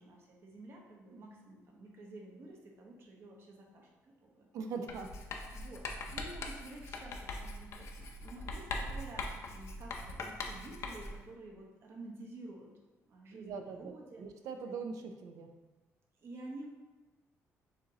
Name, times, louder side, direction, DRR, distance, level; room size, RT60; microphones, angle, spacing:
voice 1, 0.0-4.5 5.5-5.8 6.1-12.7 13.0-14.3 16.2-16.7, right 2 dB, 50° right, -1 dB, 0.9 m, -50 dB
voice 2, 4.5-5.1 13.3-15.5, right 5 dB, 80° right, 5 dB, 0.5 m, -42 dB
Writing, 4.9-11.3, left 2 dB, 55° left, 0.5 m, -42 dB
7.0 x 2.6 x 2.8 m, 1.2 s
cardioid pair, 145°, 6 cm